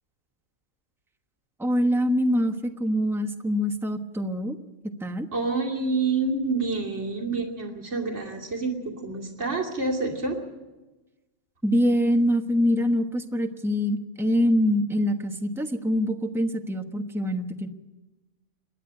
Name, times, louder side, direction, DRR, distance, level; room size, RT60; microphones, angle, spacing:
voice 1, 1.6-4.6 5.0-5.3 11.6-17.7, equal, ahead, 5 dB, 1.1 m, -24 dB
voice 2, 5.3-10.4, right 3 dB, 75° right, 0 dB, 3.0 m, -28 dB
27.0 x 10.5 x 9.8 m, 1.1 s
omnidirectional pair, 1.2 m